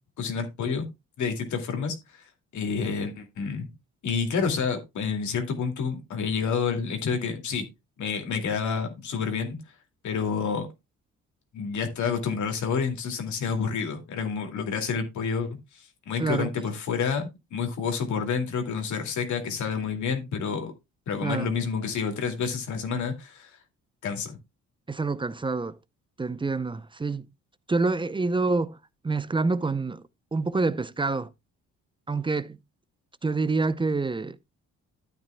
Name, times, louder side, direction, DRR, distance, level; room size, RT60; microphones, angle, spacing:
voice 1, 0.2-0.9 1.2-3.7 4.0-7.7 8.0-9.6 10.0-10.7 11.5-20.7 21.1-23.6 24.0-24.4, left 6 dB, 70° left, 2.4 m, -29 dB
voice 2, 16.2-16.5 21.2-21.5 24.9-25.8 26.2-27.3 27.7-28.8 29.0-30.0 30.3-31.3 32.1-32.6 33.2-34.4, right 3 dB, 15° right, 0.5 m, -27 dB
12.5 x 8.8 x 2.2 m
cardioid pair, 90°, 30 cm